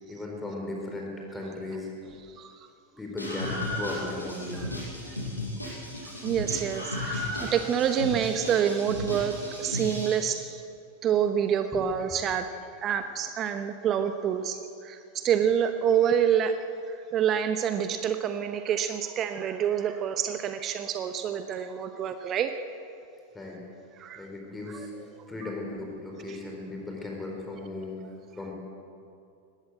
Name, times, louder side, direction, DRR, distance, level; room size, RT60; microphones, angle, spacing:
voice 1, 0.1-2.1 2.9-4.6 11.7-12.4 23.3-23.6 24.2-24.9 25.3-28.0 28.3-28.5, left 2 dB, 10° left, 0 dB, 4.5 m, -36 dB
voice 2, 2.4-2.7 5.1-5.2 6.2-10.6 11.0-12.5 12.8-16.6 16.9-22.5 24.0-24.3 24.7-24.9 25.2-25.3 26.3-26.4, right 8 dB, 30° right, 9 dB, 1.0 m, -27 dB
Screaming, 3.2-10.2, left 1 dB, 85° left, 6.4 m, -35 dB
20.5 x 16.0 x 8.0 m, 2.5 s
figure-of-eight pair, 90°, 0 cm